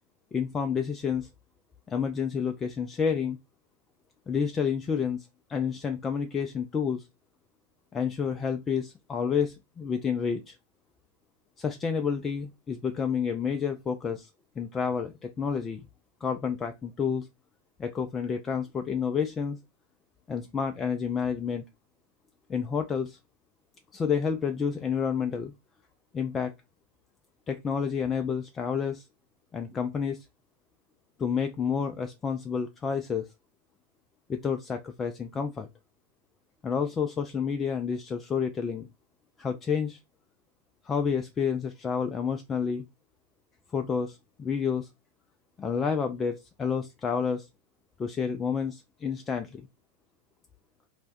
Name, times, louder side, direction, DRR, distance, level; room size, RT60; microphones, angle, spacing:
voice 1, 0.3-1.3 1.9-3.4 4.3-7.0 7.9-10.6 11.6-14.3 14.6-15.8 16.2-17.3 17.8-19.6 20.3-21.6 22.5-23.2 23.9-25.5 26.1-26.5 27.5-29.1 29.5-30.2 31.2-33.3 34.3-35.7 36.6-38.9 39.4-40.0 40.8-42.8 43.7-44.9 45.6-47.5 48.0-49.7, left 6 dB, 20° left, 0.3 m, -29 dB
2.5 x 2.1 x 3.4 m
figure-of-eight pair, 90°, 0 cm